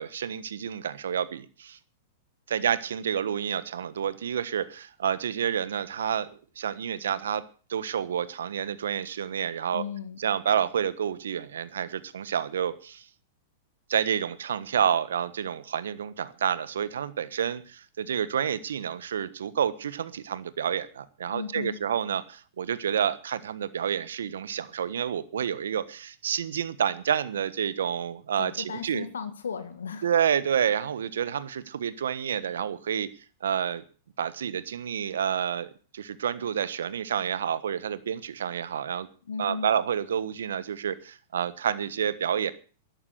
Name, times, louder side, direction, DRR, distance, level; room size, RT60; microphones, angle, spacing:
voice 1, 0.0-1.8 2.5-6.3 6.6-7.4 7.7-9.8 10.2-13.1 13.9-29.1 30.0-33.1 33.4-33.8 34.2-39.1 39.4-42.5, right 8 dB, 75° right, 16 dB, 1.2 m, -29 dB
voice 2, 9.7-10.2 21.3-21.8 28.4-30.1 39.3-39.7, left 6 dB, 80° left, 10 dB, 1.7 m, -35 dB
12.0 x 11.5 x 8.1 m, 0.40 s
hypercardioid pair, 105°, 0 cm